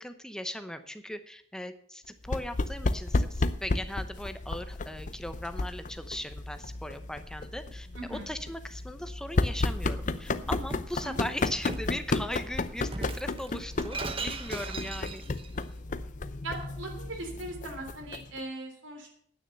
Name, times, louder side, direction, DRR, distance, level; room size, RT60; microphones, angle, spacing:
voice 1, 0.0-15.2, left 1 dB, 5° left, 9 dB, 0.8 m, -39 dB
sound 1, 2.2-18.4, left 2 dB, 40° left, 0.6 m, -33 dB
voice 2, 7.9-8.3 11.0-11.1 16.4-19.1, right 2 dB, 80° right, 4 dB, 3.5 m, -39 dB
Shatter, 10.1-10.9 11.7-12.0 12.9-15.5, right 3 dB, 30° right, 1.0 m, -38 dB
9.5 x 9.4 x 6.8 m, 0.62 s
head